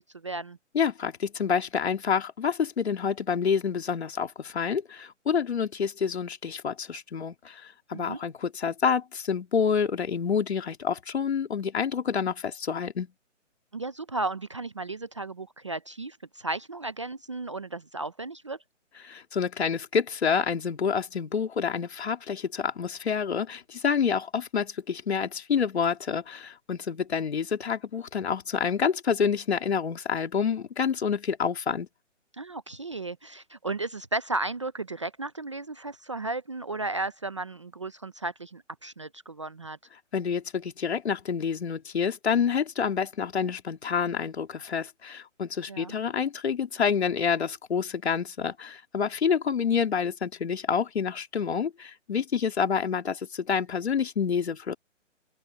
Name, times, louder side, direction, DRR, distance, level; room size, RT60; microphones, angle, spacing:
voice 1, 0.0-0.6 7.9-8.2 13.7-18.6 32.4-39.8 45.7-45.9, right 2 dB, 25° right, 0.6 m, -34 dB
voice 2, 0.7-13.1 19.0-31.9 40.1-54.7, left 6 dB, 55° left, 3.4 m, -28 dB
open air
hypercardioid pair, 170°, 38 cm